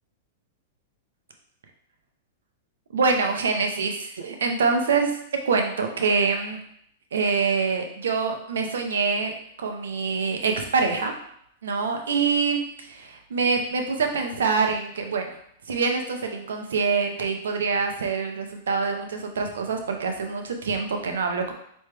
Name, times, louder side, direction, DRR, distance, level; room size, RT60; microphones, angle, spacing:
voice 1, 2.9-5.2 5.4-6.6 7.1-9.3 9.6-11.1 11.6-15.4 15.7-21.5, right 5 dB, 85° right, 4 dB, 0.7 m, -25 dB
4.4 x 3.1 x 3.3 m, 0.69 s
hypercardioid pair, 125°, 0 cm